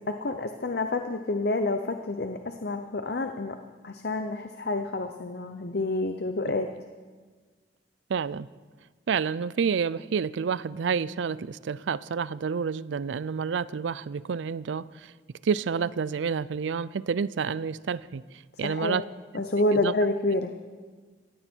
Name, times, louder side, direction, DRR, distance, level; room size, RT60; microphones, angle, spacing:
voice 1, 0.2-3.5 3.8-6.7 18.6-19.0 19.3-20.5, left 2 dB, 55° left, 7 dB, 0.7 m, -28 dB
voice 2, 8.1-8.5 9.1-15.1 15.4-18.2 18.6-19.0 19.7-19.9, right 6 dB, 80° right, 19 dB, 0.4 m, -29 dB
16.5 x 16.0 x 4.5 m, 1.4 s
head